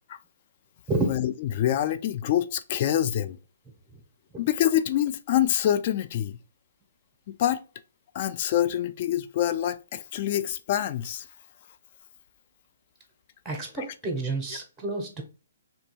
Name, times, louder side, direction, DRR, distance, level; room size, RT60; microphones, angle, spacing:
voice 1, 1.0-3.4 4.4-6.4 7.3-7.6 8.1-11.3 13.8-13.9, left 11 dB, 40° left, 0.3 m, -26 dB
voice 2, 13.4-15.2, right 2 dB, 10° right, 0.8 m, -29 dB
2.7 x 2.7 x 2.2 m
figure-of-eight pair, 130°, 0 cm